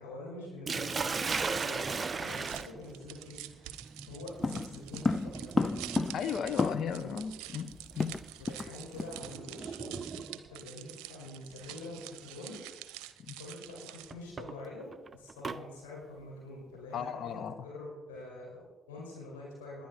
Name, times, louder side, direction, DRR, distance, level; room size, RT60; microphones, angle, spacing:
voice 1, 0.0-3.7 4.1-5.8 6.9-7.2 8.4-10.2 10.5-12.6 13.4-19.9, left 2 dB, 70° left, -4 dB, 5.1 m, -46 dB
Sink (filling or washing), 0.7-10.6 11.7-12.0 12.5-12.6 14.1-15.6, right 4 dB, 30° right, 0.6 m, -38 dB
sound 1, 0.9-14.3, right 13 dB, 65° right, 0.7 m, -48 dB
sound 2, 4.4-7.1 7.4-7.5 7.7-8.7 9.0-9.2 9.6-9.8, left 3 dB, 25° left, 0.6 m, -32 dB
voice 2, 6.1-8.2 13.3-13.4 16.9-17.6, left 7 dB, 50° left, 12 dB, 1.0 m, -36 dB
20.5 x 9.8 x 4.3 m, 1.1 s
figure-of-eight pair, 45°, 0 cm